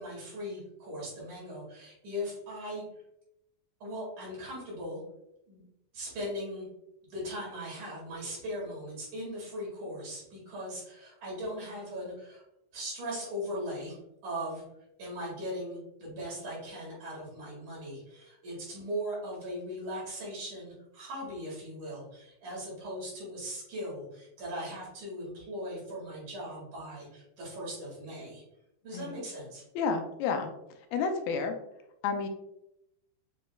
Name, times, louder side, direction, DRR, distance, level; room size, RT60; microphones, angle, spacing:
voice 1, 0.0-2.8 3.8-5.0 5.5-5.6 5.9-6.7 7.1-12.4 12.7-13.9 14.2-14.6 15.0-28.4 28.8-29.6, equal, 60° right, -6 dB, 3.1 m, -39 dB
voice 2, 29.8-30.5 30.9-31.6 32.0-32.3, left 5 dB, 85° left, 5 dB, 2.4 m, -30 dB
7.4 x 3.1 x 2.2 m, 0.83 s
omnidirectional pair, 4.3 m